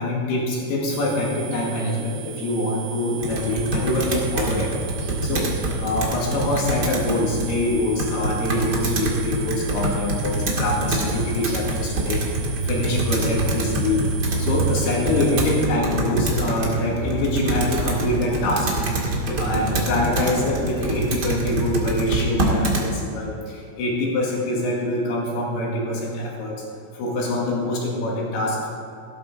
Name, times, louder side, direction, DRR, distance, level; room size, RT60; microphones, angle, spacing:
voice 1, 0.0-4.7 5.0-5.5 5.8-12.2 12.6-14.0 14.4-18.7 19.0-26.6 27.0-28.7, left 1 dB, 75° left, -3 dB, 4.1 m, -25 dB
sound 1, 0.9-15.7, right 9 dB, 75° right, 3.1 m, -39 dB
Computer keyboard, 3.2-22.9, right 2 dB, 35° right, 1.8 m, -25 dB
17.0 x 13.5 x 3.8 m, 2.6 s
omnidirectional pair, 4.7 m